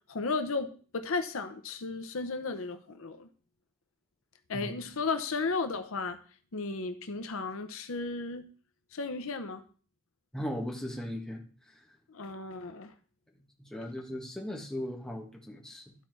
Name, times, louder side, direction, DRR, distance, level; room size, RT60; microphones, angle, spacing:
voice 1, 0.1-3.3 4.5-6.2 6.5-8.4 8.9-9.6 12.1-12.9, left 4 dB, 70° left, 8 dB, 0.8 m, -34 dB
voice 2, 10.3-11.8 13.6-15.9, equal, 5° left, 0 dB, 1.3 m, -38 dB
12.0 x 4.2 x 4.5 m, 0.40 s
head